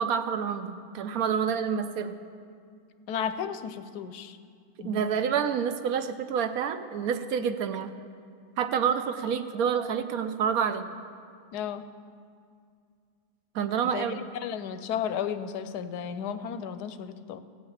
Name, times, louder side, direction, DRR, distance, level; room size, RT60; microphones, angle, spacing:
voice 1, 0.0-2.2 4.8-7.9 8.6-10.9 13.5-14.2, right 7 dB, 70° right, 10 dB, 1.0 m, -28 dB
voice 2, 3.1-4.4 4.8-5.0 11.5-11.8 13.9-17.4, left 8 dB, 85° left, 11 dB, 1.2 m, -33 dB
15.5 x 5.7 x 8.6 m, 2.2 s
omnidirectional pair, 1.7 m